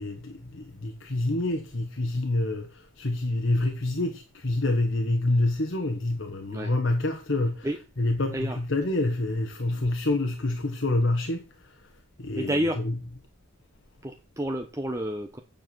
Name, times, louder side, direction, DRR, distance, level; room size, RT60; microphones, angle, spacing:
voice 1, 0.0-11.9 12.2-13.2, left 2 dB, 60° left, 1.3 m, -27 dB
voice 2, 7.6-8.1 8.3-8.6 12.4-12.8 14.0-15.4, equal, 15° right, 0.8 m, -30 dB
8.8 x 7.1 x 6.1 m
head